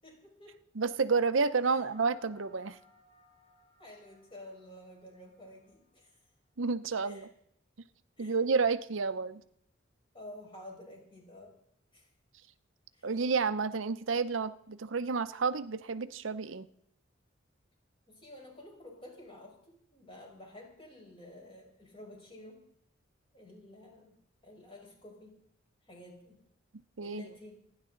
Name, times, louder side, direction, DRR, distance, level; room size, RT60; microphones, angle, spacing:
voice 1, 0.0-0.6 1.7-1.8 3.8-6.2 7.0-7.3 8.2-8.4 10.1-11.6 11.9-12.1 12.9-13.1 18.1-22.6 23.3-24.1 24.4-25.4 25.8-26.4 27.0-27.6, left 1 dB, 30° left, -1 dB, 5.1 m, -51 dB
voice 2, 0.8-2.8 6.6-7.3 8.2-9.4 13.0-16.7 27.0-27.3, right 4 dB, 75° right, 12 dB, 0.7 m, -30 dB
sound 1, 1.4-6.0, left 1 dB, 55° left, 6.8 m, -62 dB
28.0 x 10.5 x 3.9 m, 0.70 s
head